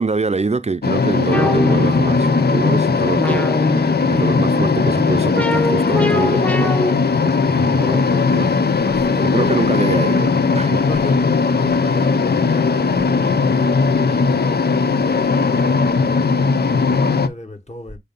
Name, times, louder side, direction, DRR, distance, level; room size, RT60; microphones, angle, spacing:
voice 1, 0.0-8.5 9.2-10.9, right 4 dB, 40° right, 0.5 m, -24 dB
sound 1, 0.8-17.3, left 4 dB, 85° left, 0.5 m, -18 dB
sound 2, 1.3-6.9, left 2 dB, 10° left, 0.4 m, -22 dB
voice 2, 7.4-8.4 8.8-9.9 10.8-18.0, left 2 dB, 45° left, 1.4 m, -34 dB
6.6 x 2.8 x 5.2 m
wide cardioid pair, 45°, 16 cm